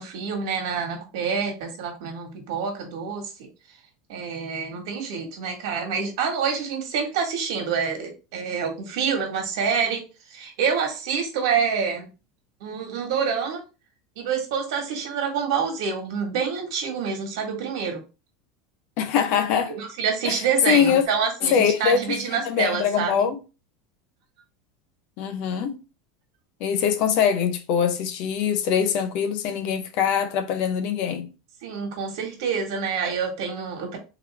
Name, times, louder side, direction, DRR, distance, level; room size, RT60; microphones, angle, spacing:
voice 1, 0.0-3.3 4.1-10.0 10.3-12.1 12.6-13.6 14.1-18.0 19.7-23.2 31.6-34.0, right 6 dB, 70° right, 1.6 m, -27 dB
voice 2, 19.0-19.8 20.2-20.4 20.7-21.0 21.4-23.4 25.2-25.8 26.6-31.3, left 7 dB, 50° left, 0.7 m, -23 dB
3.9 x 3.1 x 3.4 m
supercardioid pair, 160°, 3 cm